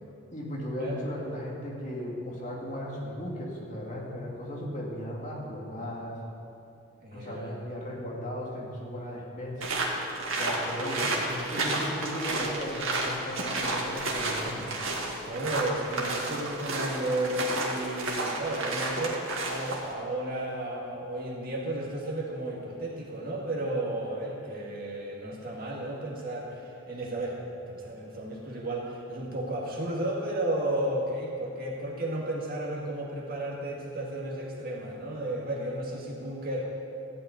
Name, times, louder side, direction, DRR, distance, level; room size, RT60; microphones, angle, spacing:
voice 1, 0.3-6.2 7.1-10.1 10.4-14.7, equal, 35° left, -3 dB, 2.2 m, -36 dB
voice 2, 7.0-7.6 15.3-27.4 27.7-36.6, right 1 dB, 45° right, -3 dB, 2.0 m, -33 dB
sound 1, 9.6-19.9, right 2 dB, 75° right, 2.0 m, -31 dB
14.5 x 5.9 x 9.2 m, 2.6 s
head